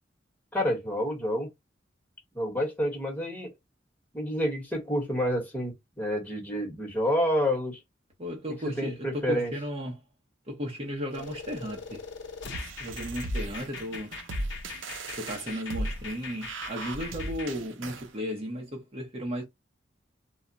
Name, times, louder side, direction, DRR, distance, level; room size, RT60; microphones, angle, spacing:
voice 1, 0.5-1.5 2.3-3.5 4.1-7.8 8.6-9.5, equal, 10° left, 1.1 m, -29 dB
voice 2, 8.2-10.0 10.5-12.0 12.8-14.1 15.2-19.4, equal, 35° right, 0.6 m, -35 dB
sound 1, 11.1-17.5, left 5 dB, 75° left, 0.8 m, -42 dB
sound 2, 12.5-18.1, right 1 dB, 85° right, 0.5 m, -37 dB
2.2 x 2.0 x 3.8 m
head